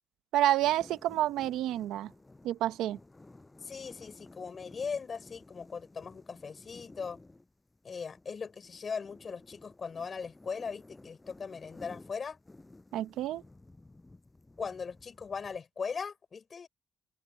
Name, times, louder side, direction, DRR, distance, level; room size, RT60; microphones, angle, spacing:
voice 1, 0.3-2.1 2.4-3.0 12.9-13.4, right 13 dB, 90° right, 0.8 m, -29 dB
sound 1, 0.6-15.6, left 2 dB, 15° left, 7.1 m, -55 dB
voice 2, 3.6-7.2 7.8-12.4 14.6-16.7, left 5 dB, 40° left, 4.7 m, -39 dB
open air
cardioid pair, 90°, 0 cm